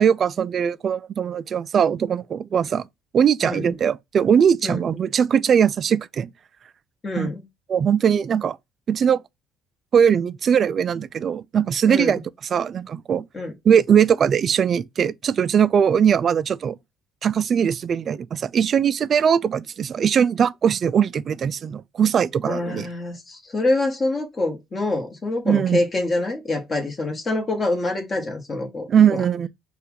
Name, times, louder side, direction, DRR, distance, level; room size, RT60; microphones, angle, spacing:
voice 1, 0.0-2.9 3.1-6.3 7.2-7.3 7.7-8.6 8.9-9.2 9.9-12.2 12.5-13.3 13.6-16.8 17.2-22.9 25.5-25.8 28.9-29.5, right 8 dB, 45° right, 0.3 m, -20 dB
voice 2, 7.0-7.4 11.9-12.2 13.3-13.5 22.4-29.2, left 2 dB, 30° left, 1.6 m, -26 dB
5.5 x 2.4 x 3.9 m
cardioid pair, 115°, 0 cm